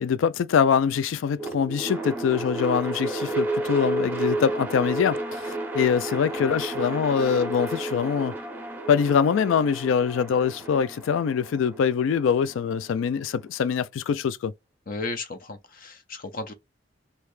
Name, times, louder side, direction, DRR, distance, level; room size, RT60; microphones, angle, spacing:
voice 1, 0.0-8.3 8.9-14.5, left 7 dB, 85° left, 0.3 m, -24 dB
sound 1, 1.4-13.5, right 2 dB, 10° right, 0.8 m, -32 dB
voice 2, 14.9-16.5, left 3 dB, 50° left, 0.8 m, -34 dB
3.2 x 2.8 x 3.2 m
head